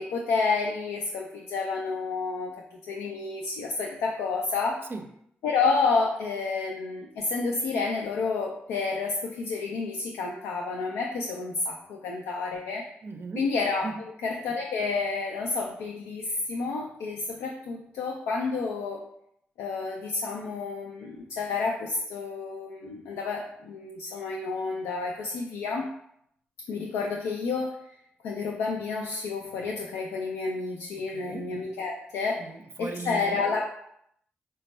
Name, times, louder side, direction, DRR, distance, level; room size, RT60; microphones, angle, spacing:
voice 1, 0.0-2.5 2.9-4.8 5.4-12.8 13.4-13.9 14.2-19.0 19.6-25.9 26.7-27.7 28.2-32.4 32.8-33.7, left 4 dB, 85° left, -1 dB, 0.3 m, -30 dB
voice 2, 13.0-13.5 13.8-14.0 31.0-31.5 32.4-33.4, right 3 dB, 50° right, 5 dB, 0.5 m, -38 dB
4.0 x 2.2 x 3.1 m, 0.73 s
supercardioid pair, 40°, 5 cm